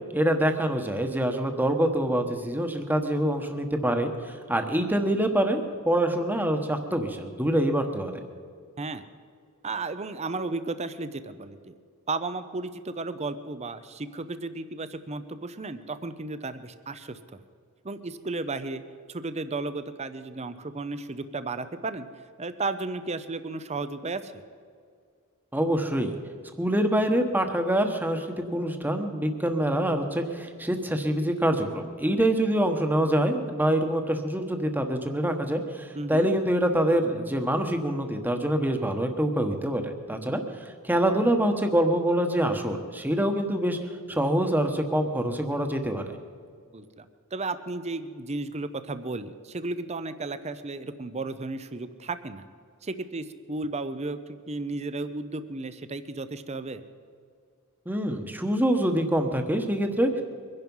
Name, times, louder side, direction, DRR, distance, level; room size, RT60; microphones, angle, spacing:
voice 1, 0.1-8.1 25.5-26.1 26.6-40.4 40.8-43.8 44.1-46.0 57.9-60.2, right 1 dB, 10° right, 5 dB, 1.2 m, -25 dB
voice 2, 9.6-11.8 12.1-17.2 17.8-18.8 19.1-22.1 22.4-24.4 35.9-36.3 46.7-47.1 47.3-52.4 52.8-56.8, right 3 dB, 30° right, 12 dB, 0.7 m, -34 dB
23.5 x 10.5 x 5.5 m, 2.2 s
head